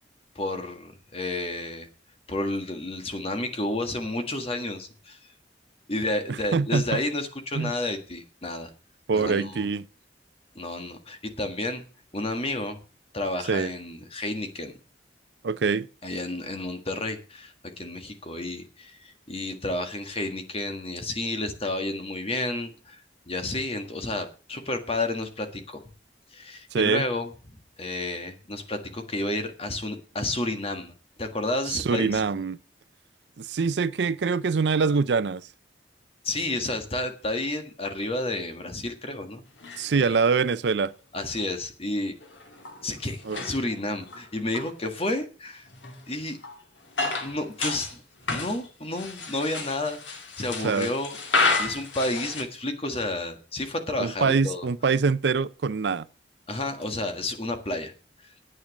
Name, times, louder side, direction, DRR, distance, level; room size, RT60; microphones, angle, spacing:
voice 1, 0.3-1.9 2.3-5.2 5.9-8.7 9.1-9.7 10.5-11.8 12.1-12.8 13.1-14.8 16.0-23.0 23.3-25.8 26.3-27.3 27.8-30.9 31.2-32.2 36.2-39.4 39.7-40.1 41.1-42.1 42.8-45.7 46.1-46.4 47.2-48.0 48.3-54.7 56.5-57.9, left 2 dB, 30° left, 1.7 m, -31 dB
voice 2, 6.3-7.0 7.6-7.7 9.1-9.9 13.5-13.7 15.4-15.9 26.7-27.0 31.7-32.6 33.4-35.4 39.8-40.9 43.3-43.4 50.6-50.9 54.0-56.1, right 5 dB, 65° right, 0.5 m, -24 dB
sound 1, 39.6-40.4 41.4-41.5 42.2-44.7 45.0-45.1 45.7-48.0 48.2-52.4, left 3 dB, 80° left, 2.3 m, -31 dB
10.0 x 8.8 x 6.4 m
head